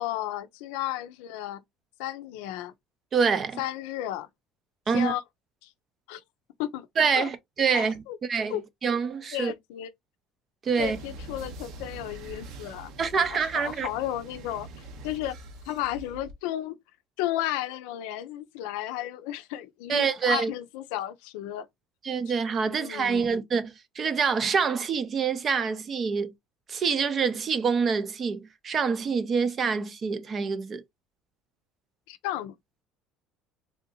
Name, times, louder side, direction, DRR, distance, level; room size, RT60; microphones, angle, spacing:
voice 1, 0.0-1.6 2.0-2.7 3.6-4.3 4.9-5.2 5.6-5.7 6.1-6.2 6.6-6.9 7.2-7.3 7.7-8.2 8.5-8.6 9.3-9.9 10.8-12.9 13.2-15.4 15.7-16.8 17.2-21.7 22.7-23.3 32.1-32.6, left 13 dB, 90° left, 0.4 m, -33 dB
voice 2, 3.1-3.6 4.9-5.1 7.0-8.0 8.3-9.5 10.6-11.0 13.0-13.9 19.9-20.5 22.0-26.3 26.7-30.8, right 5 dB, 30° right, 0.5 m, -26 dB
sound 1, 10.8-16.3, right 2 dB, 60° right, 0.7 m, -44 dB
3.5 x 2.7 x 2.6 m
cardioid pair, 145°, 0 cm